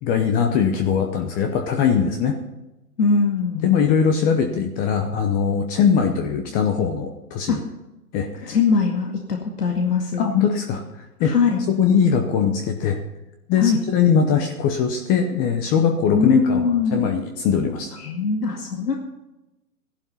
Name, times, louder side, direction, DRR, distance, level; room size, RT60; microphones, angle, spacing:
voice 1, 0.0-2.3 3.6-7.6 8.1-8.6 10.2-13.0 13.5-18.0, left 7 dB, 20° left, 5 dB, 0.8 m, -21 dB
voice 2, 3.0-3.7 7.5-7.6 8.4-10.3 11.2-11.6 13.6-13.8 16.1-17.1 18.0-19.0, left 5 dB, 80° left, 1 dB, 2.2 m, -21 dB
14.5 x 11.5 x 5.6 m, 0.98 s
hypercardioid pair, 135°, 47 cm